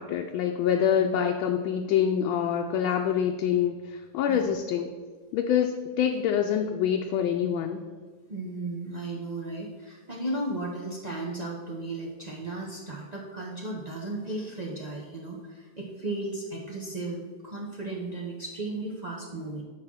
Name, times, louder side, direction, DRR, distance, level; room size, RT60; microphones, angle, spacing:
voice 1, 0.0-4.9 5.3-7.8, left 8 dB, 80° left, 4 dB, 1.3 m, -26 dB
voice 2, 8.3-19.6, right 2 dB, 85° right, -3 dB, 0.3 m, -35 dB
8.8 x 4.3 x 6.0 m, 1.5 s
omnidirectional pair, 2.3 m